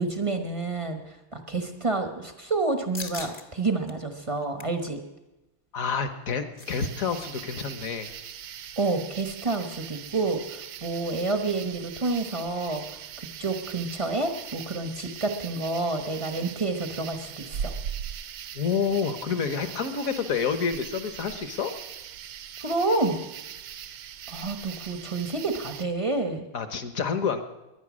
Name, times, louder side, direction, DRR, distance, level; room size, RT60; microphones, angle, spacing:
voice 1, 0.0-5.0 8.8-12.8 13.2-17.7 22.6-23.2 24.3-26.4, right 3 dB, 25° right, 5 dB, 0.7 m, -29 dB
sound 1, 2.9-3.4 3.9-4.0 4.4-4.8 6.1-7.3 7.5-7.7 8.0-8.3, left 3 dB, 30° left, 0.7 m, -41 dB
voice 2, 5.7-8.1 18.5-21.7 26.5-27.4, left 6 dB, 50° left, 9 dB, 1.2 m, -28 dB
sound 2, 6.7-25.9, right 9 dB, 70° right, 1.5 m, -40 dB
21.5 x 10.0 x 6.2 m, 1.0 s
omnidirectional pair, 2.4 m